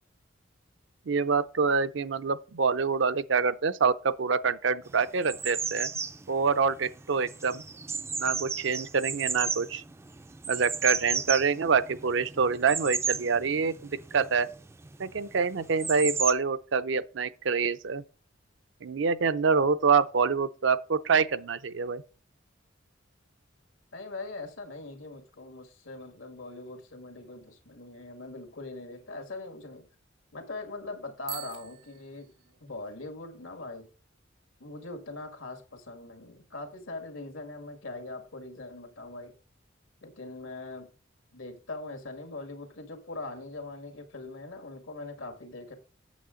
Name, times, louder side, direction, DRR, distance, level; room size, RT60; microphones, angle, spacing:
voice 1, 1.1-5.9 6.3-7.6 8.2-9.8 10.5-14.5 15.0-18.0 18.8-22.0, right 5 dB, 70° right, 0.5 m, -26 dB
sound 1, 4.9-16.3, right 5 dB, 15° right, 0.3 m, -34 dB
voice 2, 23.9-29.9 30.3-32.3 32.6-33.9 34.6-39.3 40.0-40.9 41.3-45.8, left 2 dB, 90° left, 1.9 m, -41 dB
Bicycle bell, 31.2-32.9, right 10 dB, 85° right, 1.4 m, -44 dB
8.4 x 7.0 x 3.8 m
head